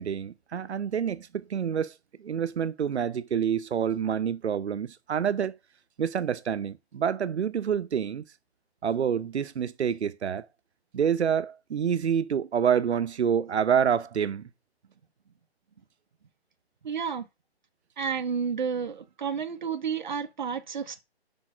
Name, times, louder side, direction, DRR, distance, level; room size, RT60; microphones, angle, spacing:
voice 1, 0.0-5.5 6.0-8.2 8.8-10.5 10.9-14.5, right 8 dB, 90° right, 0.8 m, -27 dB
voice 2, 16.8-17.3 18.0-21.0, right 6 dB, 45° right, 0.9 m, -31 dB
5.5 x 4.2 x 5.9 m
hypercardioid pair, 175°, 32 cm